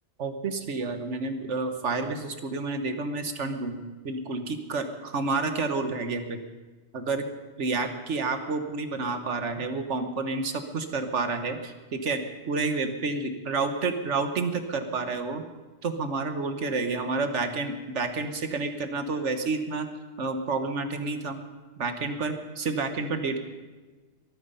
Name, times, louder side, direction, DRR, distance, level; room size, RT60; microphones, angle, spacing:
voice 1, 0.2-3.8 4.0-6.4 6.9-7.2 7.6-12.2 12.5-15.4 15.8-19.9 20.2-21.4 21.8-23.4, right 3 dB, 75° right, 7 dB, 1.5 m, -29 dB
22.5 x 9.4 x 5.5 m, 1.3 s
omnidirectional pair, 1.2 m